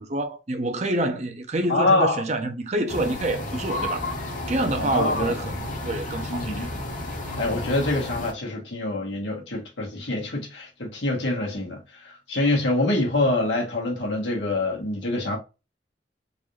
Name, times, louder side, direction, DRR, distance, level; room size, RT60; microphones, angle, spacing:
voice 1, 0.0-4.1 4.5-6.7, right 1 dB, 40° right, 0.7 m, -27 dB
voice 2, 1.7-2.2 4.8-5.3 6.3-6.7 7.4-15.4, left 2 dB, 85° left, 1.5 m, -25 dB
sound 1, 2.9-8.3, left 1 dB, 45° left, 1.0 m, -32 dB
3.9 x 2.6 x 3.2 m
head